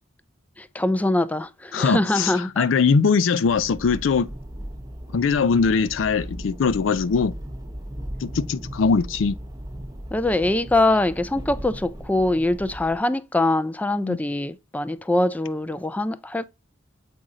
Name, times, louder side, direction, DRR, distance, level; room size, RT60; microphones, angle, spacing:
voice 1, 0.6-2.7 10.1-16.4, left 2 dB, 10° left, 0.3 m, -23 dB
voice 2, 1.7-4.3 5.1-7.3 8.2-9.4 14.1-14.2, left 5 dB, 80° left, 0.4 m, -21 dB
sound 1, 3.5-13.0, equal, 20° right, 0.7 m, -37 dB
7.5 x 2.7 x 4.8 m
head